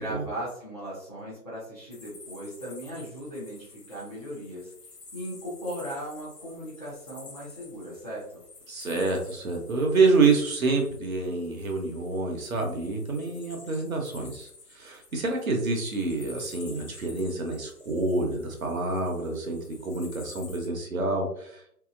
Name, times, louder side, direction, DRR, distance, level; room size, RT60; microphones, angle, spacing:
voice 1, 0.0-4.7 5.1-8.4, equal, 25° left, -9 dB, 0.6 m, -38 dB
sound 1, 1.9-20.7, left 3 dB, 75° left, 0.9 m, -50 dB
voice 2, 8.7-21.6, right 3 dB, 60° right, 2 dB, 0.8 m, -27 dB
2.9 x 2.8 x 2.4 m, 0.69 s
figure-of-eight pair, 145°, 48 cm